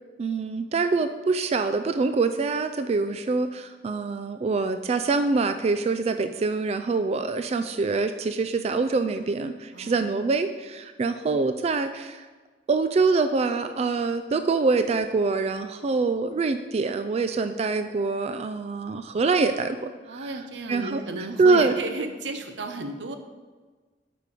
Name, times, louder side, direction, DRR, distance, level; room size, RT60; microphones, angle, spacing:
voice 1, 0.2-12.2 12.7-19.9 20.7-21.0 21.4-21.7, right 4 dB, 35° right, 9 dB, 0.3 m, -25 dB
voice 2, 9.7-10.0 20.1-23.2, right 2 dB, 90° right, 7 dB, 0.8 m, -33 dB
8.3 x 5.1 x 4.9 m, 1.4 s
head